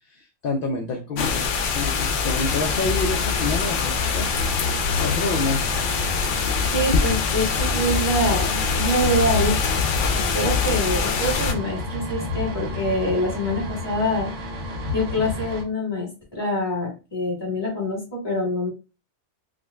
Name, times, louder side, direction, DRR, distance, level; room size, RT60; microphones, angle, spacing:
voice 1, 0.1-4.3 5.0-5.6, left 3 dB, 60° left, 2 dB, 0.7 m, -28 dB
sound 1, 1.2-11.5, left 5 dB, 80° left, 0.9 m, -23 dB
sound 2, 2.4-15.6, left 1 dB, 90° right, 1.1 m, -33 dB
voice 2, 6.6-9.6 10.1-14.3 14.9-18.7, equal, 20° left, -4 dB, 1.5 m, -25 dB
4.7 x 2.2 x 2.2 m, 0.30 s
omnidirectional pair, 1.2 m